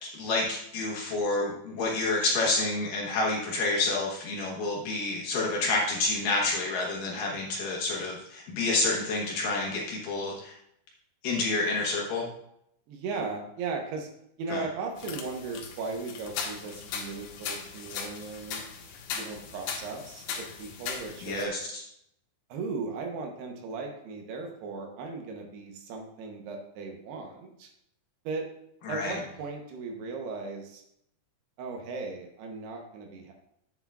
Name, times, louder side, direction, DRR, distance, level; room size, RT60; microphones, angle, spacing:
voice 1, 0.0-10.6 11.2-12.3 14.5-14.7 21.2-21.8 28.8-29.1, left 3 dB, 65° left, -2 dB, 2.4 m, -29 dB
voice 2, 12.9-14.1 14.4-18.6 19.1-21.7 22.5-27.7 28.2-28.5 28.9-30.8 31.6-33.3, right 4 dB, 75° right, 2 dB, 2.9 m, -37 dB
sound 1, 15.0-21.5, left 6 dB, 85° left, 3.2 m, -38 dB
9.8 x 8.1 x 2.4 m, 0.75 s
omnidirectional pair, 5.0 m